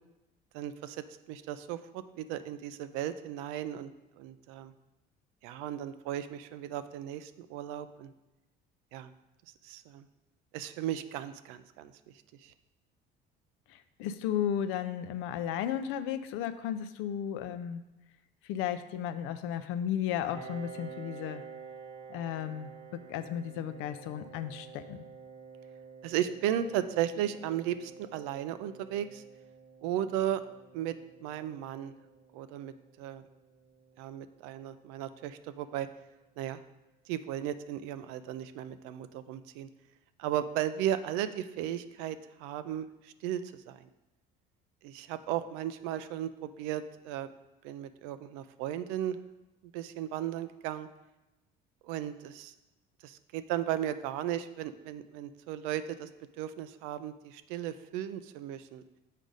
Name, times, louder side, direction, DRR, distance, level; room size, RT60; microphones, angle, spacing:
voice 1, 0.5-1.0 1.3-4.7 5.4-8.1 8.9-9.1 9.6-10.0 10.5-11.9 12.4-12.5 26.0-29.2 29.8-30.4 30.7-30.9 31.2-31.9 32.3-32.7 33.0-33.2 34.0-35.9 36.4-36.6 37.1-39.7 40.2-43.9 44.8-47.3 47.6-49.2 49.7-50.9 51.8-52.5 53.0-56.1 56.4-58.8, right 11 dB, 85° right, 12 dB, 0.4 m, -35 dB
voice 2, 13.7-17.8 18.4-21.4 22.1-25.0, left 9 dB, 75° left, 11 dB, 0.5 m, -34 dB
Piano, 20.3-35.7, right 5 dB, 60° right, 0.8 m, -50 dB
6.5 x 4.9 x 3.9 m, 0.98 s
supercardioid pair, 90°, 21 cm